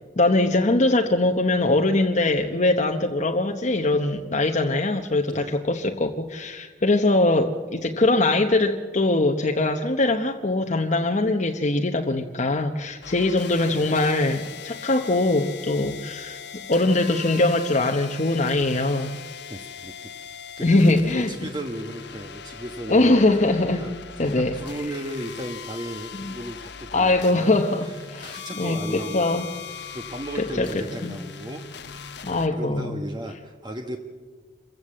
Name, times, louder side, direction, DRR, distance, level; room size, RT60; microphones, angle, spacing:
voice 1, 0.2-16.4 16.7-19.2 20.6-21.3 22.9-23.9 24.2-24.6 26.2-26.3 26.9-29.5 30.4-30.7 31.0-31.2 32.2-33.0, left 2 dB, 40° left, 4 dB, 1.0 m, -22 dB
sound 1, 13.0-32.5, left 7 dB, 65° left, 1.2 m, -40 dB
voice 2, 19.5-19.9 20.2-20.3 20.6-23.2 23.8-23.9 24.5-32.1 32.5-34.0, right 1 dB, 25° right, 3 dB, 1.2 m, -35 dB
27.0 x 15.5 x 7.6 m, 1.5 s
head